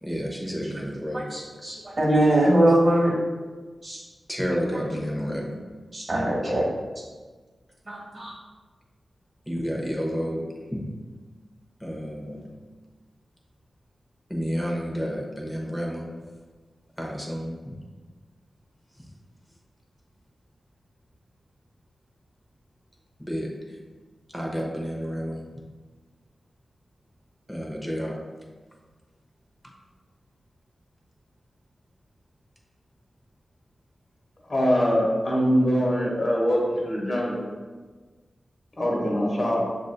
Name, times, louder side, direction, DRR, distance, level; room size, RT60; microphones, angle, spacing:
voice 1, 0.0-1.3 4.3-5.5 9.4-10.4 10.7-10.9 11.8-12.4 14.3-16.0 17.0-17.7 23.2-23.8 24.3-25.4 27.5-28.1, equal, 5° left, -1 dB, 0.9 m, -30 dB
voice 2, 1.3-3.1 3.8-4.0 5.9-6.7 7.9-8.3, right 1 dB, 40° right, -4 dB, 1.3 m, -22 dB
voice 3, 34.5-37.5 38.8-39.7, equal, 45° left, -3 dB, 1.1 m, -23 dB
6.3 x 2.6 x 2.2 m, 1.4 s
cardioid pair, 55°, 0 cm